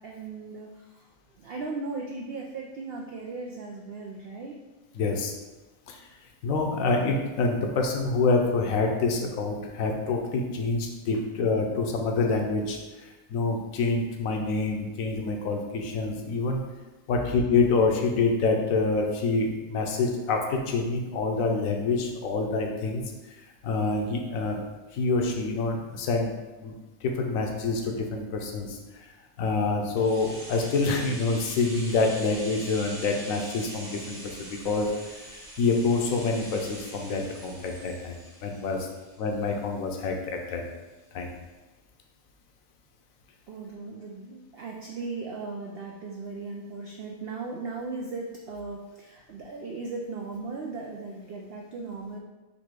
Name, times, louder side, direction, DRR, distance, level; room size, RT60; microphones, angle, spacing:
voice 1, 0.0-4.6 43.5-52.2, right 3 dB, 75° right, 0 dB, 0.5 m, -37 dB
voice 2, 4.9-5.3 5.9-6.1 6.4-16.6 17.1-23.0 23.4-24.6 24.9-26.3 26.6-26.7 27.0-29.1 29.4-38.1 38.4-38.9 39.2-40.6 41.1-41.3, left 3 dB, 70° left, 2 dB, 1.0 m, -27 dB
sound 1, 30.0-39.8 40.1-40.2, right 1 dB, 20° right, 0.8 m, -43 dB
4.1 x 2.7 x 4.5 m, 1.2 s
omnidirectional pair, 1.5 m